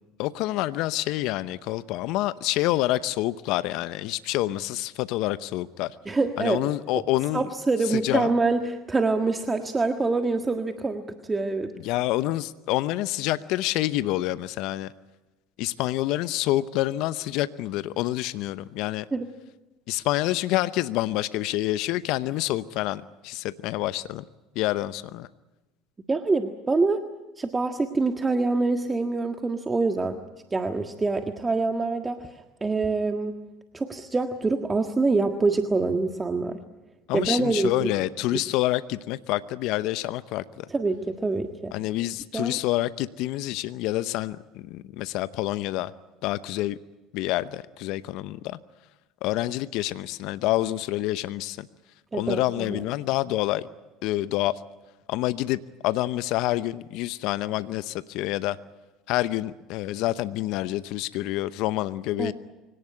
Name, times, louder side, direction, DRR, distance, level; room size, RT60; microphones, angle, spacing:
voice 1, 0.2-6.0 6.4-7.5 7.9-8.3 11.8-14.9 15.6-19.1 19.9-24.2 24.5-25.3 37.1-40.7 41.7-45.9 46.2-46.8 47.1-48.6 49.2-51.7 52.1-53.7 54.0-54.6 55.1-58.6 59.1-62.3, left 16 dB, 65° left, 15 dB, 0.8 m, -27 dB
voice 2, 6.1-6.6 7.3-11.7 19.1-19.3 26.1-27.0 27.4-30.2 30.5-32.3 32.6-33.4 33.7-36.6 37.1-37.9 40.7-41.7 42.3-42.6 52.1-52.8 62.2-62.3, right 3 dB, 20° right, 6 dB, 1.6 m, -25 dB
24.0 x 18.0 x 9.8 m, 1.1 s
hypercardioid pair, 75°, 0 cm